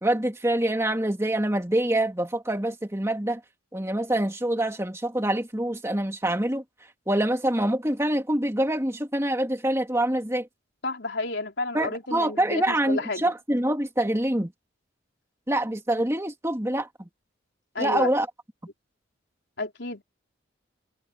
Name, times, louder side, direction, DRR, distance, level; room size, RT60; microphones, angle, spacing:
voice 1, 0.0-3.4 3.7-6.6 7.1-10.5 11.7-14.5 15.5-17.1 17.8-18.3, right 1 dB, 15° right, 2.3 m, -25 dB
voice 2, 10.8-13.3 17.7-18.1 19.6-20.0, left 2 dB, 60° left, 4.1 m, -31 dB
head